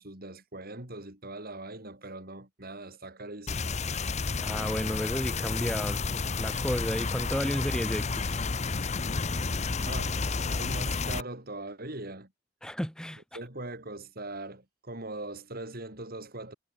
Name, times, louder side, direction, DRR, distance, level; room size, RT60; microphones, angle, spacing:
voice 1, 0.0-3.9 9.9-10.2 10.5-12.3 13.4-16.6, right 2 dB, 50° right, 5.3 m, -41 dB
sound 1, 3.5-11.2, left 4 dB, 35° left, 0.9 m, -31 dB
voice 2, 4.4-8.3 12.6-13.2, equal, 5° left, 1.6 m, -32 dB
head